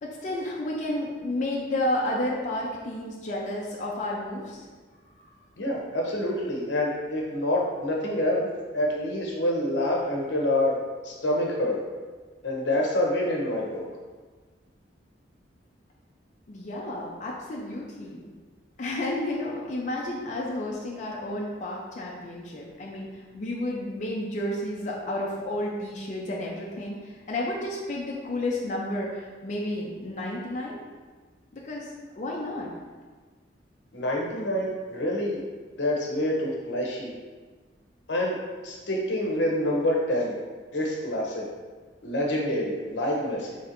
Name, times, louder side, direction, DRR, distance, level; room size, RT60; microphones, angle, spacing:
voice 1, 0.0-4.7 16.5-18.2 18.8-23.1 23.3-30.8 31.5-32.7, left 1 dB, 45° left, -3 dB, 0.5 m, -31 dB
voice 2, 5.6-8.5 8.7-10.8 11.0-11.8 12.4-13.8 33.9-35.4 35.8-37.1 38.1-38.4 38.6-40.4 40.7-41.4 42.0-43.6, left 1 dB, 80° left, -2 dB, 0.8 m, -27 dB
4.2 x 3.3 x 2.5 m, 1.4 s
head